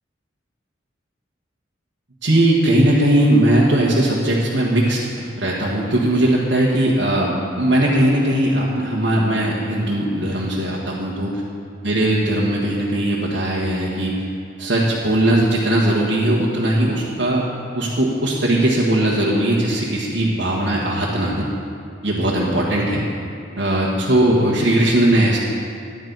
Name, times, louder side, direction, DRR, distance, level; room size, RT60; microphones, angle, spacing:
voice 1, 2.2-11.4 11.8-14.2 14.6-17.4 17.7-21.5 22.0-23.0 23.5-25.4, right 1 dB, 70° right, -5 dB, 1.5 m, -19 dB
14.0 x 11.0 x 4.0 m, 2.5 s
head